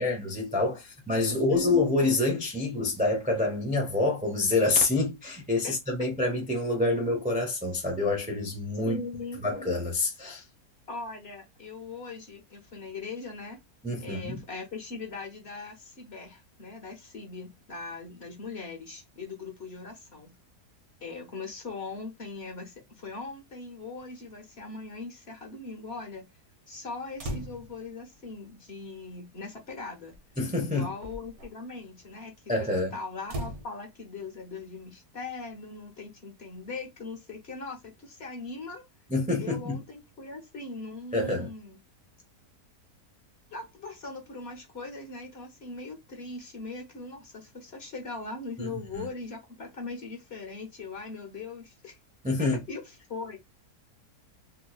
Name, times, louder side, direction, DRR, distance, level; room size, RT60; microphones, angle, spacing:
voice 1, 0.0-9.0 9.4-10.4 13.8-14.4 30.4-30.9 32.5-33.0 39.1-39.8 41.1-41.5 48.6-48.7 48.9-49.1 52.2-52.6, left 2 dB, 15° right, 0.3 m, -27 dB
voice 2, 1.3-1.8 5.6-5.7 8.9-9.4 10.9-13.6 14.0-20.3 21.0-26.3 26.7-30.2 30.7-38.8 39.4-41.8 43.5-52.0 52.4-53.4, left 3 dB, 45° left, 1.1 m, -40 dB
sound 1, 27.2-27.9 29.1-29.2 30.1-30.3 30.8-31.5 33.2-33.7, right 1 dB, 55° right, 1.1 m, -37 dB
3.6 x 2.9 x 2.3 m
omnidirectional pair, 1.7 m